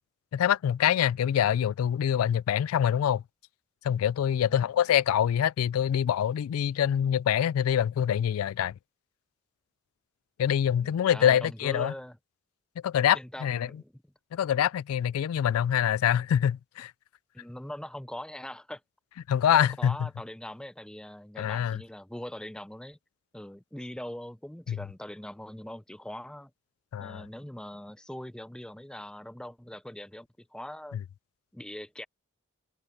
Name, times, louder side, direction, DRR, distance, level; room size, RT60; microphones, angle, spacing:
voice 1, 0.3-3.2 3.8-8.7 10.4-11.9 12.8-13.7 14.3-16.9 19.3-20.1 21.4-21.8 24.7-24.8 26.9-27.2, left 9 dB, 85° left, 0.3 m, -25 dB
voice 2, 10.8-12.2 13.1-14.0 17.3-18.8 19.5-23.0 23.3-26.5 27.0-31.0 31.5-32.1, left 1 dB, 5° left, 0.4 m, -42 dB
head